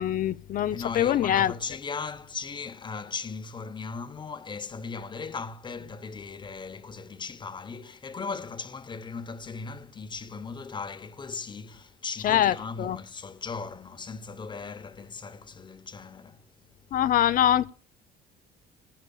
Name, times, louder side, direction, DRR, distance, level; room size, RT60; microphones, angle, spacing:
voice 1, 0.0-1.5 12.2-13.0 16.9-17.7, left 11 dB, 55° left, 0.5 m, -24 dB
voice 2, 0.7-16.5, left 5 dB, 25° left, 1.0 m, -37 dB
17.5 x 10.5 x 2.4 m
cardioid pair, 110°, 17 cm